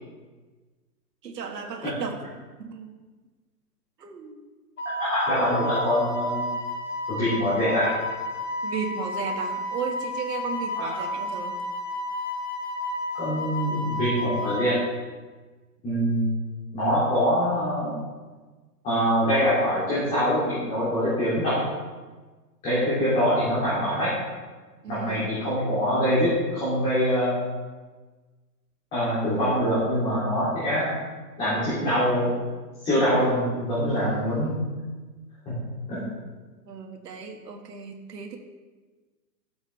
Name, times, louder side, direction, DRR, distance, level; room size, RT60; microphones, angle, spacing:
voice 1, 1.2-2.2 2.6-2.9 4.0-4.4 8.6-11.6 24.8-25.3 33.9-34.4 36.7-38.4, right 6 dB, 75° right, 3 dB, 1.7 m, -35 dB
Wind instrument woodwind instrument, 4.8-14.7, left 1 dB, 45° left, 1.1 m, -31 dB
voice 2, 5.0-6.5 7.1-7.9 10.7-11.0 13.1-14.7 15.8-16.3 16.7-17.9 18.8-21.6 22.6-24.1 24.9-27.3 28.9-30.9 31.4-32.3 32.8-34.6 35.4-35.5 35.9-36.0, equal, 15° left, -12 dB, 2.8 m, -24 dB
12.5 x 7.9 x 3.4 m, 1.3 s
hypercardioid pair, 170°, 50 cm